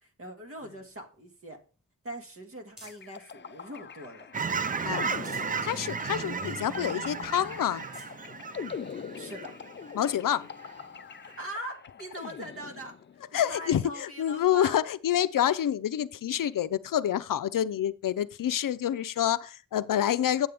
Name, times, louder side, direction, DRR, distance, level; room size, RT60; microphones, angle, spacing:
voice 1, 0.0-1.6 2.0-4.3 4.8-5.3 9.2-9.5 11.2-12.9 13.3-14.8, right 1 dB, 45° right, 1.6 m, -42 dB
sound 1, 0.6-3.2 3.8-4.5 4.9-5.6 6.1-6.2 6.5-6.6 7.2-7.3 7.7-8.2 9.0-9.1 10.9-11.0, left 1 dB, ahead, 4.6 m, -56 dB
sound 2, 2.9-13.3, left 6 dB, 35° left, 0.4 m, -43 dB
Fowl / Chirp tweet, 4.3-10.2 10.6-10.8, right 5 dB, 25° right, 0.3 m, -34 dB
voice 2, 5.6-7.8 9.9-10.5 13.3-20.5, left 10 dB, 85° left, 0.5 m, -27 dB
9.2 x 7.7 x 3.4 m
wide cardioid pair, 175°, 32 cm